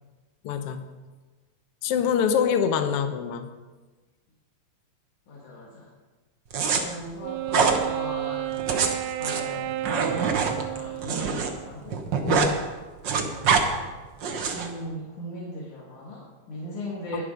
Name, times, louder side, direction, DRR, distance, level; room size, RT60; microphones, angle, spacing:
voice 1, 0.4-0.9 1.8-3.5 12.3-12.6 17.1-17.2, left 7 dB, 70° left, 8 dB, 1.5 m, -25 dB
voice 2, 5.3-5.9 6.7-8.6 9.2-12.0 13.1-13.9 14.5-17.2, equal, 85° left, -4 dB, 3.3 m, -38 dB
sound 1, 6.5-6.8 7.5-7.8 8.5-11.5 11.8-12.5 12.8-13.6 14.2-14.7, right 6 dB, 55° right, 1.3 m, -24 dB
Wind instrument woodwind instrument, 7.2-11.8, right 14 dB, 90° right, 2.0 m, -32 dB
20.5 x 7.0 x 5.2 m, 1.3 s
omnidirectional pair, 3.4 m